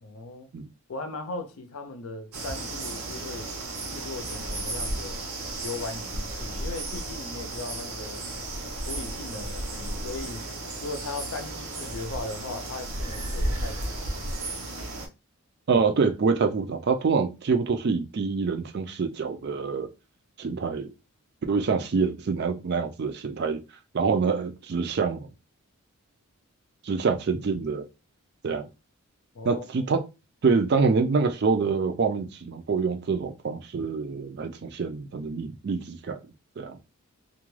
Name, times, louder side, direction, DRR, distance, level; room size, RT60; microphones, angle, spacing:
voice 1, 0.0-0.5 0.9-3.5 3.9-5.2 5.6-8.3 8.8-10.5 10.8-13.9 29.3-29.9, left 3 dB, 70° left, 0.5 m, -38 dB
sound 1, 2.3-15.1, right 2 dB, 90° right, 0.8 m, -34 dB
voice 2, 15.7-19.9 20.4-20.9 21.5-23.6 23.9-25.3 26.8-27.8 28.4-28.7 29.4-30.0 30.4-36.2 36.6-36.8, right 5 dB, 50° right, 0.4 m, -26 dB
2.3 x 2.2 x 3.1 m
head